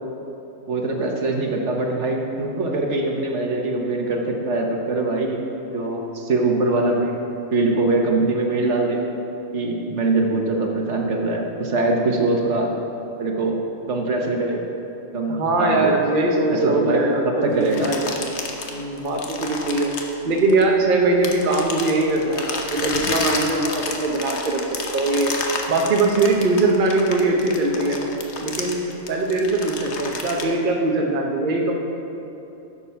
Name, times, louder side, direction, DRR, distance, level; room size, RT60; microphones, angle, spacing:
voice 1, 0.7-5.4 5.7-7.2 7.5-9.0 9.5-12.7 13.2-13.6 13.9-14.6 15.1-15.9 16.6-17.9, right 2 dB, 65° right, 1 dB, 1.3 m, -22 dB
voice 2, 15.3-18.3 18.7-19.9 20.2-25.3 25.7-28.0 28.4-31.8, right 2 dB, 45° right, 0 dB, 1.0 m, -21 dB
sound 1, 17.6-20.8 21.2-30.4, left 4 dB, 60° left, 1.2 m, -30 dB
10.5 x 7.3 x 5.7 m, 3.0 s
omnidirectional pair, 1.3 m